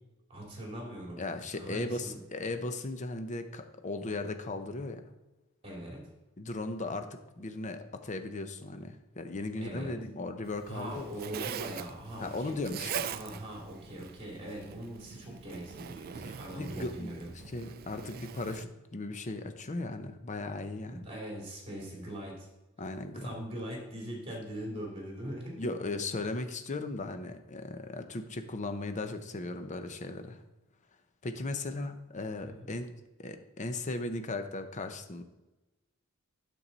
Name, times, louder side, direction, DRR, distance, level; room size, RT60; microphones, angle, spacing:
voice 1, 0.3-1.2 1.6-2.2 5.6-6.0 9.6-9.9 10.7-12.7 13.1-17.5 20.9-22.5 23.1-25.7 32.5-32.7, right 1 dB, 30° right, -2 dB, 2.8 m, -41 dB
voice 2, 1.2-5.0 6.4-11.1 12.2-13.1 16.1-17.2 17.5-21.1 22.8-23.2 25.6-30.4 31.2-32.9 33.2-35.2, left 2 dB, 35° left, 8 dB, 0.7 m, -37 dB
Zipper (clothing), 10.4-18.6, right 8 dB, 45° right, 0.4 m, -42 dB
8.9 x 7.0 x 4.0 m, 1.0 s
head